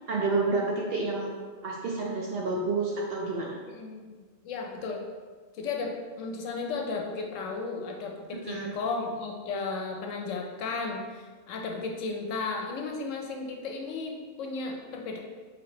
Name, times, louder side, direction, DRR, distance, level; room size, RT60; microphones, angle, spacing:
voice 1, 0.1-1.3 1.6-3.6 8.5-8.8, right 3 dB, 65° right, -2 dB, 0.6 m, -29 dB
voice 2, 3.7-5.1 5.5-15.2, left 4 dB, 75° left, 1 dB, 0.9 m, -34 dB
3.2 x 3.2 x 3.8 m, 1.5 s
omnidirectional pair, 1.4 m